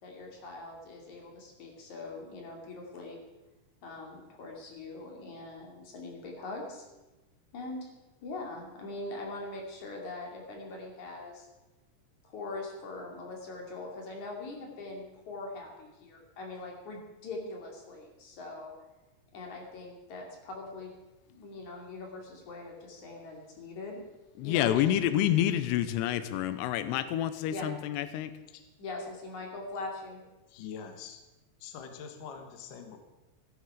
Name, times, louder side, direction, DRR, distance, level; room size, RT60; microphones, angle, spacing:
voice 1, 0.0-3.2 3.8-6.9 7.5-7.9 8.2-11.5 12.2-18.7 19.3-20.9 21.3-24.0 24.4-24.8 27.5-27.8 28.8-30.2, left 2 dB, 45° left, 0 dB, 3.5 m, -42 dB
voice 2, 24.4-28.3, left 11 dB, 85° left, 12 dB, 2.8 m, -28 dB
voice 3, 30.5-31.2 31.6-33.0, left 7 dB, 65° left, 6 dB, 2.3 m, -44 dB
16.0 x 13.0 x 4.9 m, 1.1 s
omnidirectional pair, 5.1 m